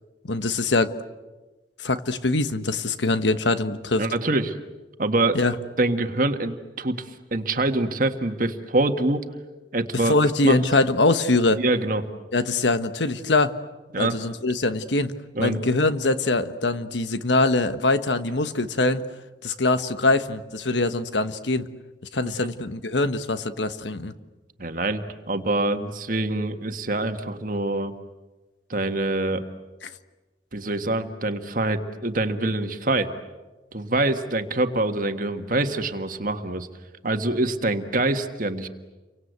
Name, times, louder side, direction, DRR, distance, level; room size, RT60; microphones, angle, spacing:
voice 1, 0.2-0.9 1.8-4.1 5.3-5.5 10.0-11.6 12.3-13.5 14.0-15.1 15.4-19.0 19.4-21.7 22.1-24.1 29.8-29.9, left 2 dB, 80° left, 11 dB, 1.3 m, -23 dB
voice 2, 4.0-4.6 5.0-5.4 5.8-9.3 9.7-10.2 10.4-10.6 11.6-12.1 13.9-14.2 15.3-15.7 22.2-22.3 24.6-27.9 28.7-29.4 30.5-33.1 33.7-36.7 37.0-38.7, right 2 dB, 50° right, 7 dB, 1.6 m, -25 dB
29.5 x 24.5 x 8.2 m, 1.2 s
head